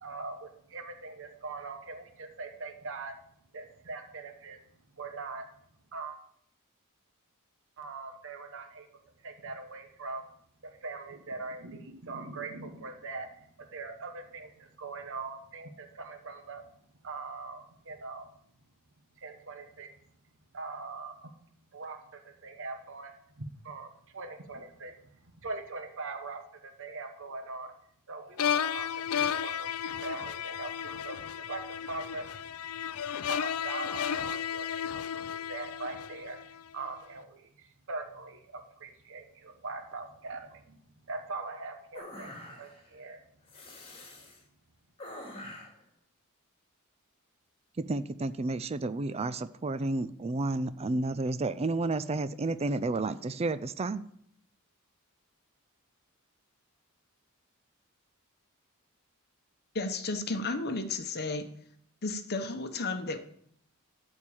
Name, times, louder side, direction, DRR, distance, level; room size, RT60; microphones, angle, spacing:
voice 1, 0.0-3.1 3.5-4.6 5.0-5.5 5.9-6.2 7.8-8.9 9.2-10.2 10.6-16.6 17.0-18.3 19.2-19.9 20.5-21.3 21.7-24.9 25.2-27.7 28.1-32.3 33.3-35.0 35.3-40.8 41.1-43.2, right 3 dB, 60° right, 6 dB, 1.1 m, -41 dB
sound 1, 28.4-36.6, left 8 dB, 75° left, 0.5 m, -33 dB
sound 2, 41.9-42.9 43.5-44.4 45.0-45.8, left 1 dB, 25° left, 2.2 m, -45 dB
voice 2, 47.8-54.0, right 2 dB, 30° right, 14 dB, 0.4 m, -31 dB
voice 3, 59.7-61.4 62.0-63.2, left 3 dB, 45° left, 8 dB, 1.0 m, -33 dB
13.5 x 4.5 x 8.6 m, 0.68 s
head